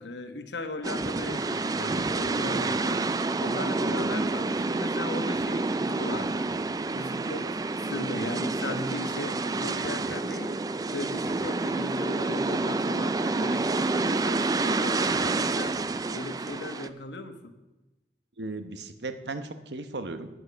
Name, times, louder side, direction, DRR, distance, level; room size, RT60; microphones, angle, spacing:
voice 1, 0.0-3.0 3.4-6.5 6.9-10.5 10.9-15.8 16.1-17.5, left 2 dB, 75° left, 8 dB, 1.2 m, -37 dB
sound 1, 0.8-16.9, right 3 dB, 20° right, 0.3 m, -28 dB
voice 2, 18.4-20.3, right 2 dB, 75° right, 9 dB, 1.0 m, -36 dB
9.9 x 9.8 x 6.9 m, 1.0 s
head